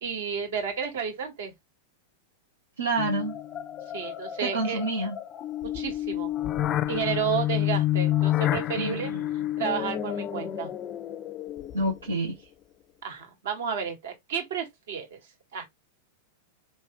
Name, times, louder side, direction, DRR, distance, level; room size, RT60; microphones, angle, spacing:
voice 1, 0.0-1.5 3.9-4.8 5.7-6.3 6.9-9.1 9.6-10.7 13.0-15.2 15.5-15.6, right 7 dB, 65° right, 1.6 m, -31 dB
voice 2, 2.8-3.3 4.4-5.1 8.8-9.3 11.7-12.4, right 2 dB, 85° right, 1.0 m, -28 dB
sound 1, 3.0-12.1, left 13 dB, 35° left, 0.4 m, -29 dB
4.6 x 3.2 x 3.0 m
figure-of-eight pair, 95°, 0 cm